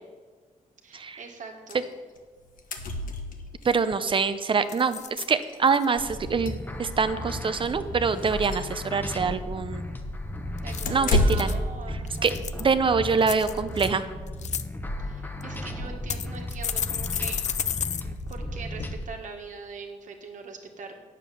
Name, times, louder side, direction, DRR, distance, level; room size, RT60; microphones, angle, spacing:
voice 1, 0.8-1.8 10.6-12.4 15.0-17.4 18.3-21.0, right 4 dB, 65° right, 3 dB, 1.6 m, -42 dB
sound 1, 1.7-1.9 2.2-2.3 2.4-3.7 5.0-5.1 5.4-5.6 6.1-7.0 7.5-7.7 8.2-8.7 10.8-11.7, left 1 dB, 75° left, 1.3 m, -28 dB
sound 2, 3.5-3.6 3.9-4.2 4.7-5.3 5.7-6.1 10.6-11.6 12.1-12.7 13.2-13.9 14.3-14.6 15.4-15.5 16.1-18.0 18.3-18.4 18.8-18.9, left 9 dB, 55° left, 0.5 m, -32 dB
voice 2, 3.6-9.8 10.9-11.6 12.2-12.3 12.6-14.0, right 5 dB, 35° right, 11 dB, 0.7 m, -25 dB
sound 3, 6.0-19.0, left 1 dB, 15° left, 1.0 m, -35 dB
9.5 x 7.5 x 6.9 m, 1.4 s
cardioid pair, 110°, 14 cm